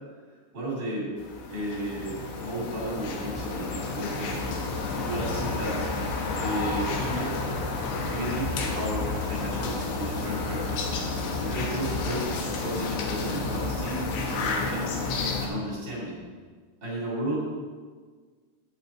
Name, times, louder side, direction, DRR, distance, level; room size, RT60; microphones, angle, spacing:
voice 1, 0.5-1.1 1.5-4.4 4.9-5.8 6.4-7.3 8.1-11.1 11.4-15.0 15.4-16.2 16.8-17.4, right 1 dB, 25° right, -5 dB, 2.9 m, -33 dB
sound 1, 1.2-15.5, left 3 dB, 70° left, 2.9 m, -30 dB
9.9 x 8.3 x 4.4 m, 1.5 s
omnidirectional pair, 5.7 m